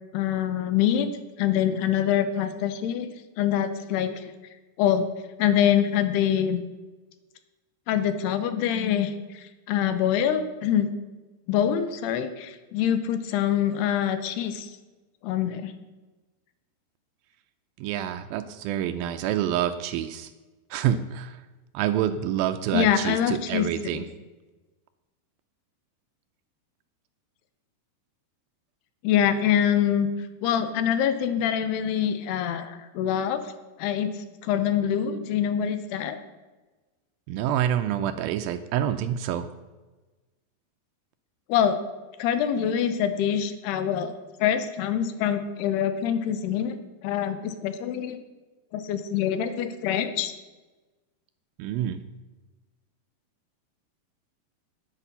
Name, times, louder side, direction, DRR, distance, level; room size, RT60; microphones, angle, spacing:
voice 1, 0.1-1.1 1.4-3.1 3.4-4.3 4.8-5.0 5.4-6.6 7.9-10.9 11.5-14.7 15.2-15.7 22.1-22.2 22.7-24.1 29.0-30.1 30.4-33.4 33.8-36.2 41.5-41.8 42.2-46.8 47.0-48.2 48.7-50.3, left 9 dB, 85° left, 10 dB, 2.8 m, -25 dB
voice 2, 17.8-20.3 20.7-21.4 21.7-24.0 37.3-39.5 51.6-52.0, right 10 dB, 90° right, 8 dB, 2.0 m, -27 dB
9.8 x 8.4 x 6.7 m, 1.2 s
omnidirectional pair, 4.8 m